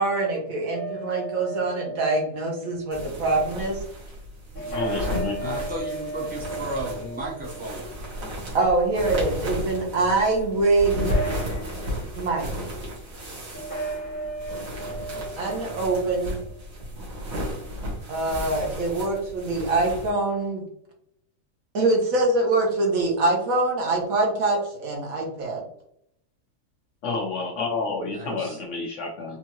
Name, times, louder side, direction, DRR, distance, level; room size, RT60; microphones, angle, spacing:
voice 1, 0.0-3.8 8.5-11.1 12.1-12.5 15.4-16.4 18.1-20.6 21.7-25.6 28.3-28.4, right 2 dB, 60° right, 0 dB, 1.4 m, -24 dB
sound 1, 0.7-2.8 4.6-8.3 8.8-9.8 10.9-12.1 13.5-16.3, right 2 dB, 35° left, 1.5 m, -35 dB
sound 2, 2.9-20.1, equal, 80° right, 1.9 m, -34 dB
voice 2, 4.7-5.5 27.0-29.4, left 4 dB, 60° left, 1 dB, 0.9 m, -29 dB
voice 3, 5.4-7.8 28.1-28.6, right 1 dB, 15° right, -4 dB, 0.3 m, -34 dB
4.5 x 2.6 x 2.9 m, 0.73 s
omnidirectional pair, 1.7 m